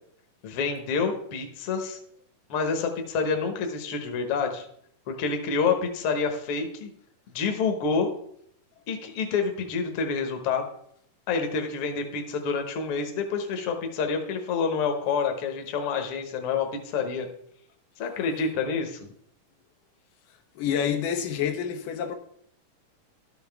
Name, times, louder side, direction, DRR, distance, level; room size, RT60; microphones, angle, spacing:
voice 1, 0.4-2.0 2.5-4.7 5.1-6.9 7.3-8.1 8.9-10.6 11.3-17.3 18.0-19.0, left 5 dB, 60° left, 1.6 m, -28 dB
voice 2, 20.6-22.2, left 8 dB, 85° left, 2.6 m, -28 dB
12.5 x 7.1 x 3.5 m
omnidirectional pair, 3.8 m